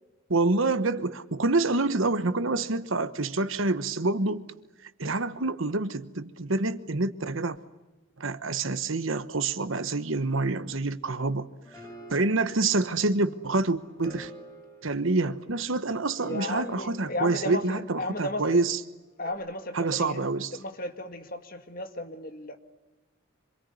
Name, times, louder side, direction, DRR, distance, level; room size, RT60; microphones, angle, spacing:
voice 1, 0.3-4.4 4.8-7.6 8.2-11.5 12.1-14.3 14.8-18.8 19.7-20.5, right 3 dB, 70° right, 12 dB, 1.2 m, -27 dB
sound 1, 11.5-18.5 19.3-19.4, right 1 dB, 15° left, 6.7 m, -49 dB
voice 2, 16.2-18.6 19.2-20.2 20.5-22.6, left 1 dB, 45° left, 7 dB, 2.0 m, -35 dB
26.5 x 22.5 x 9.6 m, 1.1 s
head